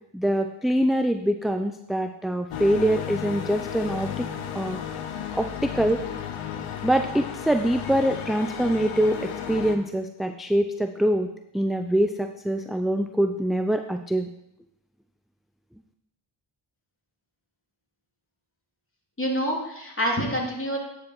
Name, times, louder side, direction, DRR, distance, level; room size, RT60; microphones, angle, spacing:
voice 1, 0.1-4.3 4.5-4.8 5.3-6.0 6.8-11.3 11.5-14.3, right 1 dB, ahead, 6 dB, 0.3 m, -24 dB
sound 1, 2.5-9.8, left 8 dB, 90° left, 0.8 m, -34 dB
voice 2, 19.2-20.8, equal, 25° left, -2 dB, 2.8 m, -27 dB
9.3 x 5.0 x 4.7 m, 0.82 s
supercardioid pair, 45°, 50 cm